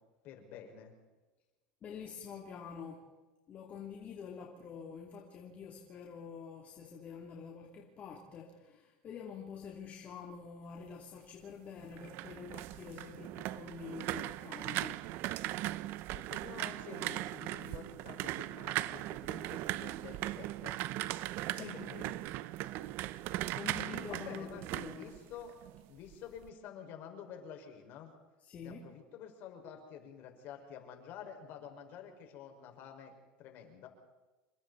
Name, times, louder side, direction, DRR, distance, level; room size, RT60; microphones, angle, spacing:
voice 1, 0.2-1.0 16.1-20.8 21.5-22.1 23.9-25.5 25.9-28.1 28.6-33.9, left 8 dB, 50° left, 3 dB, 5.6 m, -49 dB
voice 2, 1.8-3.1 3.5-15.1 21.5-22.2 23.5-25.2 28.4-28.9, left 6 dB, 35° left, -1 dB, 3.2 m, -47 dB
sound 1, 11.8-25.8 26.1-26.5, right 16 dB, 55° right, 0.8 m, -39 dB
28.5 x 24.0 x 4.3 m, 1.2 s
supercardioid pair, 135°, 4 cm